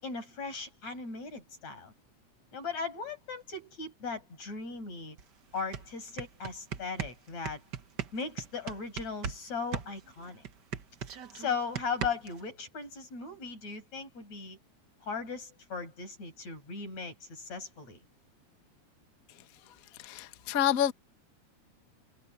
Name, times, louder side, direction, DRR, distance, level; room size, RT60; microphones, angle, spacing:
voice 1, 0.0-1.9 2.5-5.2 5.5-7.6 8.1-10.4 11.3-14.6 15.0-18.0, left 5 dB, 60° left, 7.7 m, -38 dB
sound 1, 5.2-5.3 5.6-9.4 9.7-12.4, right 8 dB, 50° right, 1.4 m, -38 dB
voice 2, 20.0-20.9, left 10 dB, 75° left, 0.7 m, -28 dB
omnidirectional pair, 3.5 m